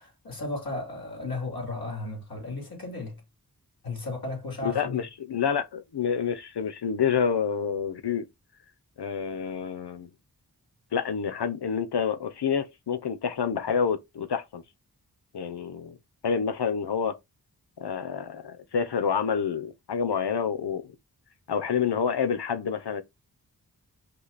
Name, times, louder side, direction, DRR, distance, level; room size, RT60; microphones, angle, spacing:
voice 1, 0.0-3.2 3.8-5.0, left 2 dB, 65° left, 3.2 m, -34 dB
voice 2, 4.6-8.3 9.0-10.1 10.9-14.6 15.3-15.9 16.2-17.1 17.8-20.9 21.5-23.0, left 7 dB, 90° left, 0.8 m, -28 dB
5.4 x 2.2 x 4.1 m
wide cardioid pair, 65°, 39 cm